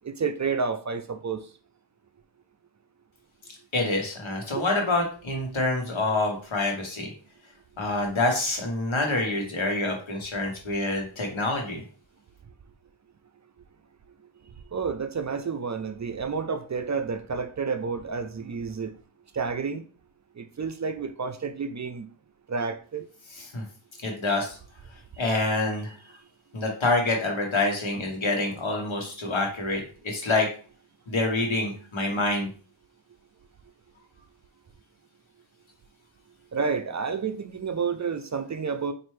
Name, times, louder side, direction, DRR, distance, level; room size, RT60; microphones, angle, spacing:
voice 1, 0.0-1.4 4.6-4.7 14.7-18.9 19.3-19.8 20.4-22.1 22.5-23.1 36.5-38.9, right 5 dB, 40° right, 0.4 m, -30 dB
voice 2, 3.7-7.1 7.8-11.8 23.3-23.6 24.0-24.6 25.2-26.0 26.5-30.5 31.1-32.5, left 2 dB, 80° left, 1.2 m, -27 dB
4.3 x 2.6 x 3.2 m
wide cardioid pair, 50°, 47 cm